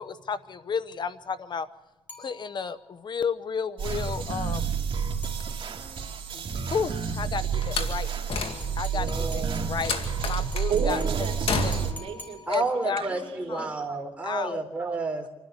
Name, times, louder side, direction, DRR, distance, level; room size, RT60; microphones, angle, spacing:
voice 1, 0.0-1.7 2.2-4.8 6.7-8.2 8.8-11.0 11.6-11.7 12.5-13.0 13.5-13.7 14.2-14.6, left 6 dB, 45° left, 14 dB, 0.8 m, -32 dB
sound 1, 2.1-2.9 5.2-6.0 8.4-13.0, left 3 dB, 20° left, 6.0 m, -47 dB
sound 2, 3.8-11.9, right 7 dB, 55° right, 2.4 m, -30 dB
voice 2, 6.3-6.7 8.9-9.7 10.8-11.0 12.5-15.3, right 3 dB, 15° right, 2 dB, 3.9 m, -31 dB
Slam, 7.6-9.0 9.8-10.7 11.5-12.1, left 5 dB, 65° left, 2.3 m, -31 dB
voice 3, 10.7-13.7, right 6 dB, 70° right, 2 dB, 3.4 m, -34 dB
26.5 x 12.5 x 8.1 m, 1.0 s
cardioid pair, 100°, 10 cm